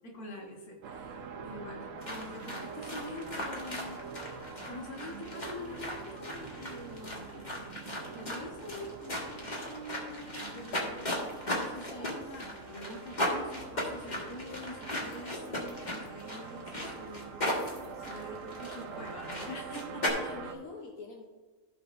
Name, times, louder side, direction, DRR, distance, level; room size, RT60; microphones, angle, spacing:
voice 1, 0.0-4.0 4.7-7.6 8.1-11.0 11.6-17.4 18.1-20.3, left 1 dB, 85° left, -1 dB, 2.0 m, -45 dB
sound 1, 0.8-20.5, right 6 dB, 70° right, 1.1 m, -46 dB
sound 2, 2.0-20.1, left 1 dB, 30° left, 1.7 m, -37 dB
voice 2, 11.6-12.4 17.8-18.4 18.8-19.1 19.9-21.3, left 3 dB, 70° left, 1 dB, 1.2 m, -47 dB
15.0 x 5.9 x 2.5 m, 1.4 s
omnidirectional pair, 1.5 m